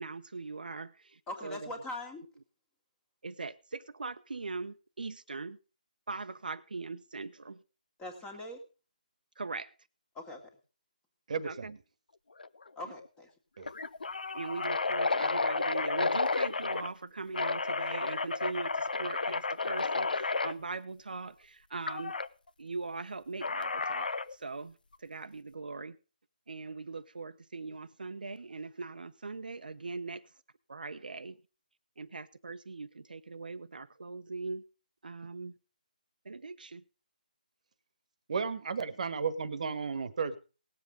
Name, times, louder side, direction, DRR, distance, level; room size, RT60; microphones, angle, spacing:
voice 1, 0.0-1.7 3.2-5.6 6.1-7.6 9.4-9.7 11.4-11.8 12.9-13.0 14.3-22.2 22.6-24.7 25.0-26.0 26.5-30.2 30.7-31.4 32.0-34.6 35.0-35.6 36.2-36.8, right 3 dB, 75° right, 0.9 m, -41 dB
voice 2, 1.3-2.3 8.0-8.6 10.2-10.5 12.8-13.3, left 2 dB, 10° left, 2.0 m, -41 dB
voice 3, 11.3-11.7 13.6-13.7 38.3-40.4, right 5 dB, 50° right, 1.4 m, -33 dB
sound 1, 12.4-12.7 13.0-13.1 13.6-16.9 17.3-20.5 21.9-22.3 23.4-24.3, left 3 dB, 80° left, 0.8 m, -32 dB
18.5 x 7.6 x 5.1 m
hypercardioid pair, 160°, 5 cm